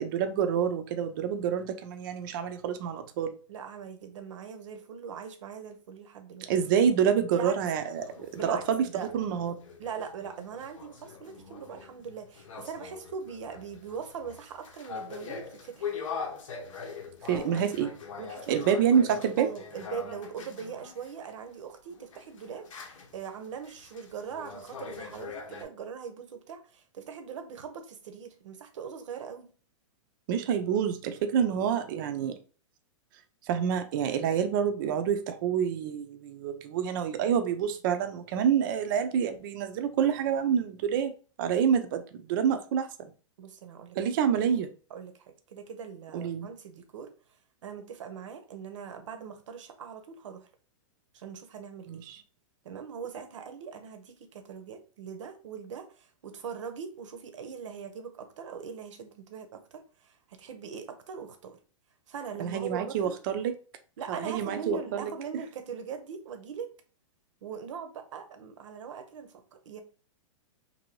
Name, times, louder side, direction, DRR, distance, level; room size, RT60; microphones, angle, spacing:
voice 1, 0.0-3.4 6.5-8.8 9.1-9.5 17.2-17.9 18.5-19.5 30.3-32.3 33.4-41.1 41.4-43.1 44.0-44.7 46.1-46.5 51.9-52.2 62.4-63.5 64.1-65.4, right 8 dB, 40° right, 8 dB, 0.4 m, -27 dB
voice 2, 3.5-6.5 7.3-7.5 8.3-9.1 9.8-16.0 18.2-18.6 19.4-29.5 43.4-44.0 44.9-47.1 47.6-50.5 51.1-52.1 52.6-61.6 62.1-63.2 64.0-66.7 67.4-69.8, right 6 dB, 75° right, 7 dB, 0.7 m, -41 dB
sound 1, 7.9-21.1 21.9-25.6, left 6 dB, 90° left, 0.8 m, -43 dB
2.6 x 2.6 x 3.0 m, 0.37 s
hypercardioid pair, 160°, 16 cm